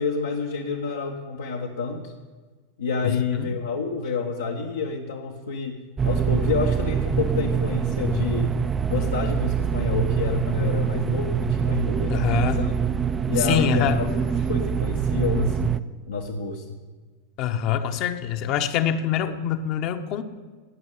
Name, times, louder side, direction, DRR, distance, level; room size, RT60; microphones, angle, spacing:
voice 1, 0.0-2.1 2.8-5.8 6.0-8.6 8.9-12.7 13.3-14.2 14.5-15.8 16.1-16.8, left 4 dB, 70° left, 0 dB, 1.2 m, -28 dB
voice 2, 3.0-3.5 12.1-12.7 13.5-14.0 17.4-20.2, left 9 dB, 45° left, 7 dB, 1.0 m, -25 dB
sound 1, 6.0-15.8, right 7 dB, 20° right, 0.6 m, -24 dB
19.0 x 7.2 x 8.4 m, 1.4 s
figure-of-eight pair, 85°, 0 cm